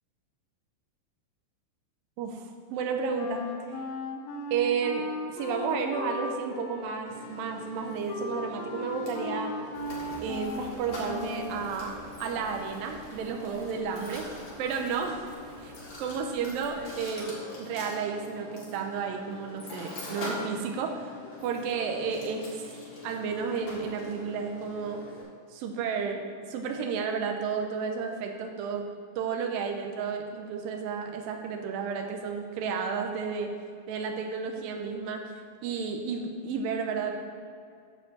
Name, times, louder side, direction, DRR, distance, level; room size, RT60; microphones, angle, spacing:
voice 1, 2.2-3.4 4.5-9.6 10.2-15.3 15.6-15.7 16.0-21.1 21.4-22.6 23.0-25.0 25.5-26.2 26.5-28.9 29.2-33.5 33.9-35.2 35.6-37.1, right 6 dB, 85° right, 3 dB, 2.5 m, -32 dB
Wind instrument woodwind instrument, 3.2-11.8, left 3 dB, 85° left, 2.3 m, -37 dB
Mechanisms, 7.1-25.2, left 2 dB, 45° left, 2.6 m, -44 dB
sound 1, 9.7-17.0, right 1 dB, 60° right, 2.0 m, -48 dB
10.0 x 4.5 x 7.2 m, 2.3 s
omnidirectional pair, 4.1 m